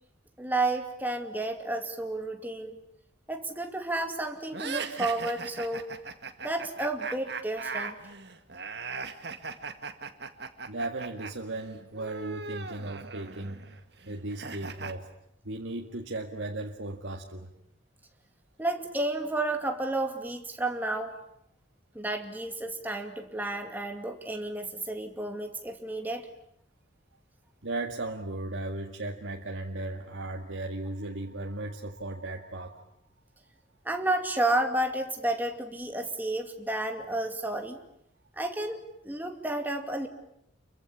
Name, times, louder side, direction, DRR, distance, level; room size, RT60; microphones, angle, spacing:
voice 1, 0.4-2.8 3.3-5.8 6.4-8.0 18.6-21.1 21.9-26.2 33.8-37.8 38.3-40.1, right 2 dB, 10° right, 4 dB, 2.5 m, -31 dB
sound 1, 4.5-11.3 11.6-14.9, right 4 dB, 55° right, 2.1 m, -38 dB
voice 2, 10.7-13.7 14.1-15.1 15.4-17.5 27.6-32.8, right 2 dB, 85° right, 2 dB, 1.9 m, -36 dB
29.0 x 23.5 x 8.7 m, 0.76 s
head